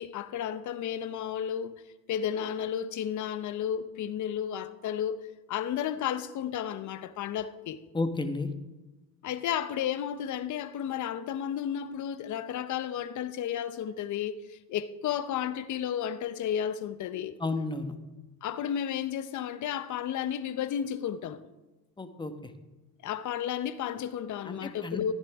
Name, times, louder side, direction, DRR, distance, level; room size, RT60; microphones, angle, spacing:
voice 1, 0.0-1.8 2.1-5.2 5.5-7.8 9.2-17.3 18.4-21.4 23.0-25.1, left 9 dB, 40° left, 0.9 m, -32 dB
voice 2, 7.9-8.5 17.4-17.9 22.0-22.5 24.5-25.1, left 3 dB, 10° left, 1.1 m, -32 dB
14.5 x 10.5 x 3.6 m
supercardioid pair, 95°, 43 cm